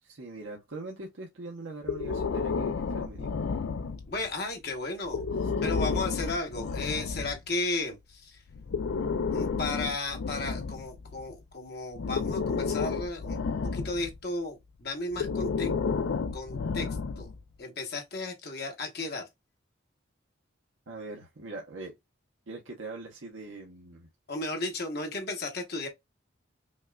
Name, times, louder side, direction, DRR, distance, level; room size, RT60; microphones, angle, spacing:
voice 1, 0.0-3.3 5.4-5.8 20.9-21.9 22.5-24.1, right 2 dB, 80° right, 0.9 m, -42 dB
Breathing, 1.9-4.3 5.0-7.4 8.5-11.3 11.9-14.2 15.1-17.4, left 5 dB, 75° left, 0.4 m, -31 dB
voice 2, 4.1-5.2 5.6-8.4 9.3-15.7 16.3-16.9 17.2-17.3 17.6-19.3 24.3-25.9, left 2 dB, 50° left, 1.0 m, -34 dB
5.3 x 2.4 x 2.2 m
head